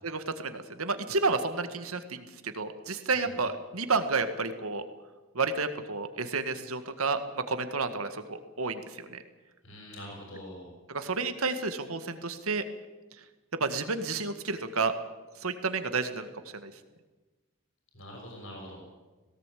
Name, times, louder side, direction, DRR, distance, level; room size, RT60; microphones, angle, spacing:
voice 1, 0.0-4.8 5.3-9.2 10.9-12.6 13.5-14.9 15.4-16.3 16.5-16.7, right 4 dB, 85° right, 9 dB, 1.8 m, -31 dB
voice 2, 9.6-10.7 17.9-18.8, equal, 65° left, 0 dB, 6.6 m, -44 dB
18.0 x 17.5 x 8.5 m, 1.2 s
head